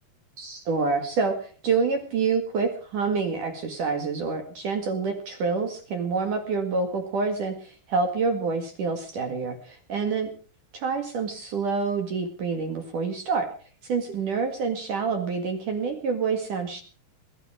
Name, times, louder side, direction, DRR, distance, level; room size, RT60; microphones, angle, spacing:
voice 1, 0.4-10.3 10.7-13.5 13.9-16.8, right 4 dB, 50° right, 5 dB, 2.9 m, -27 dB
21.0 x 13.5 x 4.8 m, 0.40 s
omnidirectional pair, 5.8 m